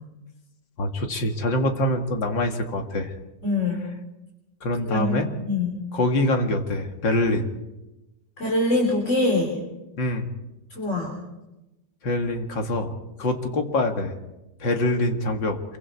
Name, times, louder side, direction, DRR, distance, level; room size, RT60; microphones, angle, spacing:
voice 1, 0.8-3.1 4.6-5.3 5.9-7.4 10.0-10.3 12.0-12.9 13.2-14.2 14.6-15.6, left 1 dB, 80° left, 4 dB, 2.8 m, -24 dB
voice 2, 3.4-3.8 4.9-5.7 8.4-9.6 10.7-11.1, left 2 dB, 40° left, -1 dB, 4.2 m, -24 dB
26.5 x 23.5 x 4.7 m, 0.98 s
omnidirectional pair, 2.0 m